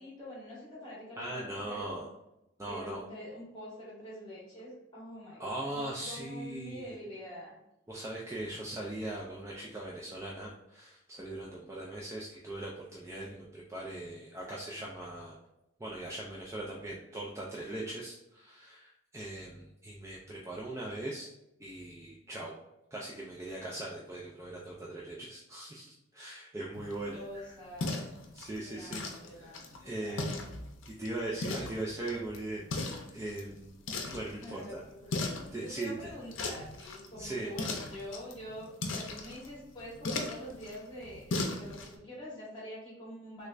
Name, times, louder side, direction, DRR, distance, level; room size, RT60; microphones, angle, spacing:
voice 1, 0.0-2.0 2.7-7.6 27.1-28.1 28.5-30.2 34.4-35.3 35.6-43.5, equal, 25° left, -6 dB, 1.5 m, -45 dB
voice 2, 1.2-2.0 2.6-3.0 5.4-6.9 7.9-15.4 15.8-21.3 21.6-22.5 22.9-27.5 28.3-29.0 29.4-30.3 30.9-33.7 34.1-34.8 35.5-35.9 37.2-37.5, right 1 dB, 15° right, -4 dB, 0.3 m, -40 dB
sound 1, 26.7-42.0, left 2 dB, 85° left, 0.6 m, -39 dB
3.2 x 3.2 x 2.4 m, 0.89 s
head